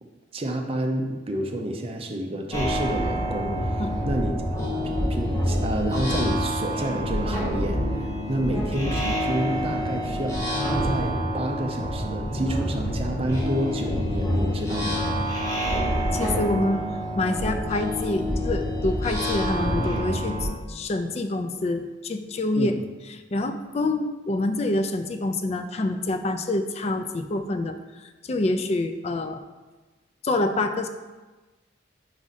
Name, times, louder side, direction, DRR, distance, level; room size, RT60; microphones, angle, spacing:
voice 1, 0.3-4.4 4.8-10.4 10.8-15.2 22.6-22.8, right 1 dB, 30° right, 3 dB, 0.5 m, -29 dB
sound 1, 2.5-20.5, equal, 15° left, 1.3 m, -27 dB
voice 2, 16.1-16.9 17.2-22.8 23.1-29.4 30.2-30.9, left 2 dB, 35° left, 8 dB, 0.3 m, -27 dB
4.9 x 4.8 x 4.1 m, 1.2 s
head